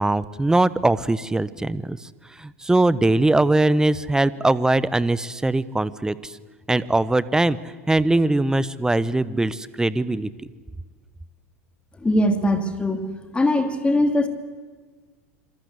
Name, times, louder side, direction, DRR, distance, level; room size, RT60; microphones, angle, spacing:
voice 1, 0.0-2.0 2.4-6.3 6.7-7.6 7.9-10.3, right 2 dB, 10° right, 17 dB, 1.1 m, -21 dB
voice 2, 12.0-13.0 13.3-14.3, left 1 dB, 15° left, 7 dB, 2.7 m, -21 dB
27.0 x 24.5 x 8.2 m, 1.5 s
hypercardioid pair, 80°, 8 cm